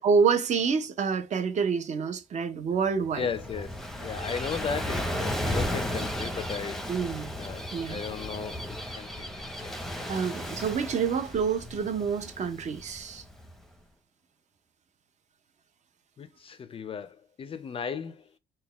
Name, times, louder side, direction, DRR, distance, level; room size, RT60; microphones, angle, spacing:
voice 1, 0.0-3.3 6.9-7.3 7.7-8.0 10.1-13.2, right 6 dB, 45° right, 0.7 m, -27 dB
Gull seagull / Waves surf, 3.0-13.5, equal, ahead, 0.7 m, -35 dB
voice 2, 3.1-6.9 7.4-10.1 16.2-18.3, left 6 dB, 35° left, 0.4 m, -36 dB
3.9 x 2.2 x 3.4 m
cardioid pair, 110°, 17 cm